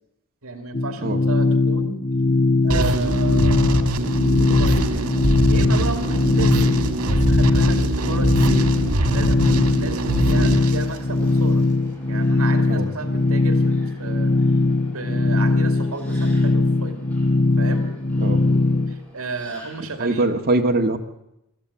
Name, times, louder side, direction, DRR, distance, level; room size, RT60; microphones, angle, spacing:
voice 1, 0.4-2.0 2.6-4.0 4.4-5.1 5.5-8.5 9.1-11.6 12.1-14.6 14.9-17.0 17.6-17.9 18.9-20.4, right 3 dB, 70° right, 6 dB, 2.5 m, -33 dB
sound 1, 0.7-18.9, left 2 dB, 40° left, 1.1 m, -20 dB
sound 2, 2.7-11.6, right 1 dB, 90° right, 1.9 m, -23 dB
Subway metro underground, 4.9-20.2, equal, 5° left, 5.5 m, -42 dB
voice 2, 20.0-21.0, right 2 dB, 45° right, 3 dB, 1.6 m, -21 dB
22.5 x 14.0 x 8.5 m, 0.86 s
head